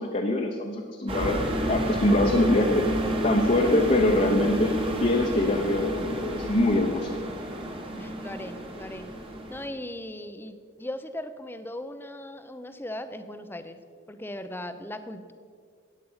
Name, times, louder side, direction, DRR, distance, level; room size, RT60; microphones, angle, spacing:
voice 1, 0.0-1.4 1.7-2.8 3.2-4.7 5.0-7.2, left 1 dB, 35° left, 1 dB, 0.8 m, -24 dB
sound 1, 1.1-9.7, equal, 25° right, 1.3 m, -30 dB
voice 2, 8.0-9.1 9.5-13.8 14.1-15.3, left 1 dB, 10° left, 10 dB, 0.6 m, -38 dB
14.5 x 9.2 x 5.7 m, 2.1 s
head